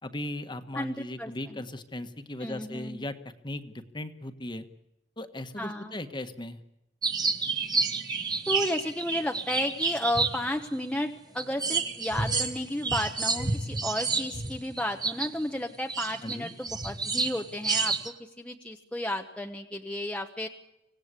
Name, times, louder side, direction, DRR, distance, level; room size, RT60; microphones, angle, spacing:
voice 1, 0.0-3.2 3.4-4.7 5.2-6.6 16.2-16.5, left 1 dB, 25° left, 9 dB, 1.5 m, -37 dB
voice 2, 0.7-1.6 2.4-3.0 5.6-6.0 8.5-20.5, left 1 dB, 5° left, 2 dB, 1.0 m, -33 dB
sound 1, 7.0-11.0 11.4-15.4 15.9-18.1, right 4 dB, 25° right, 1.7 m, -29 dB
25.5 x 17.5 x 8.3 m, 0.89 s
head